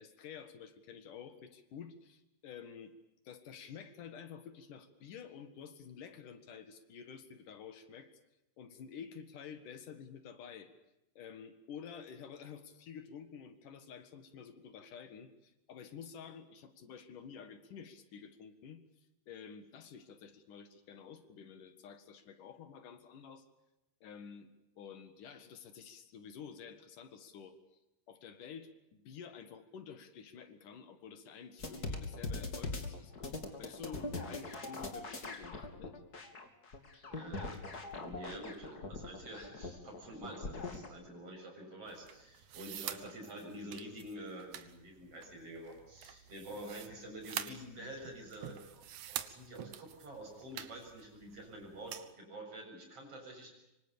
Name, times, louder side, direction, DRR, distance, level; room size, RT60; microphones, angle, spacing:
voice 1, 0.0-2.9 3.2-8.1 8.6-10.7 11.2-23.4 24.0-24.5 24.8-27.6 28.1-36.0, left 7 dB, 70° left, 10 dB, 3.3 m, -50 dB
sound 1, 31.6-40.9, left 3 dB, 30° left, 3.0 m, -42 dB
voice 2, 37.1-53.5, right 1 dB, 45° right, 2 dB, 8.1 m, -48 dB
sound 2, 41.9-52.1, right 10 dB, 65° right, 2.4 m, -47 dB
25.5 x 25.5 x 7.0 m, 0.92 s
omnidirectional pair, 3.8 m